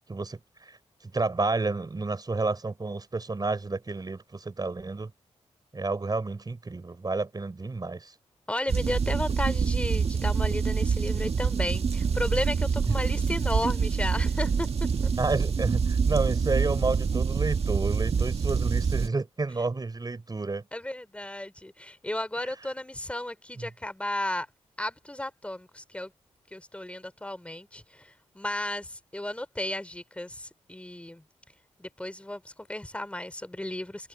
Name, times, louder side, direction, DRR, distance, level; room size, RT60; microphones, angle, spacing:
voice 1, 0.1-0.8 1.1-5.1 5.7-8.1 12.9-13.0 15.2-20.6 23.6-23.7, right 3 dB, 35° right, 5.6 m, -30 dB
voice 2, 8.5-14.7 20.7-24.5 24.8-26.1 26.5-31.2 31.8-34.1, left 1 dB, 10° left, 3.1 m, -34 dB
sound 1, 8.7-19.1, right 5 dB, 60° right, 1.8 m, -26 dB
cardioid pair, 70°, 12 cm